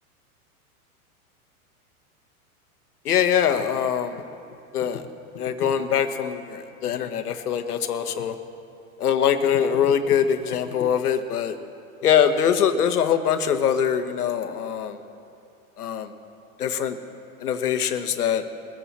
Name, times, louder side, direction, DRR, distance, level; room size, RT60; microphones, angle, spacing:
voice 1, 3.0-4.1 4.7-5.0 5.4-8.3 9.0-11.5 12.0-14.9 15.8-16.1 16.6-17.0 17.4-18.4, left 8 dB, 90° left, 8 dB, 1.3 m, -23 dB
21.0 x 15.0 x 4.2 m, 2.6 s
hypercardioid pair, 115°, 44 cm